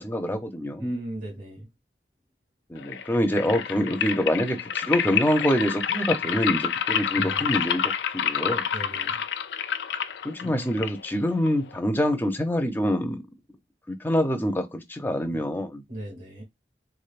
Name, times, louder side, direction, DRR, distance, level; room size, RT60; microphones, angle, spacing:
voice 1, 0.0-0.9 2.7-8.7 10.2-13.2 13.9-15.8, equal, 10° left, 0.5 m, -26 dB
voice 2, 0.8-1.7 7.1-7.4 8.7-9.2 10.4-10.8 15.9-16.4, right 1 dB, 45° right, 1.7 m, -36 dB
sound 1, 2.8-11.8, left 8 dB, 80° left, 0.4 m, -29 dB
3.6 x 3.3 x 2.4 m
head